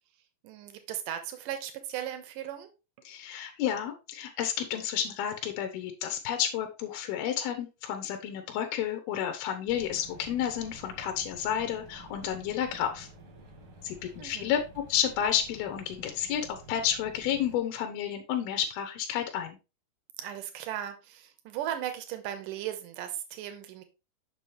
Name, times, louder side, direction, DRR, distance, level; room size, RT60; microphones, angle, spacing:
voice 1, 0.4-2.7 14.2-14.5 20.2-23.8, right 11 dB, 75° right, 2.0 m, -37 dB
voice 2, 3.0-13.1 13.8-19.6, left 9 dB, 75° left, 2.4 m, -31 dB
sound 1, 9.7-17.6, right 2 dB, 60° right, 1.3 m, -51 dB
6.9 x 6.1 x 3.2 m
omnidirectional pair, 5.0 m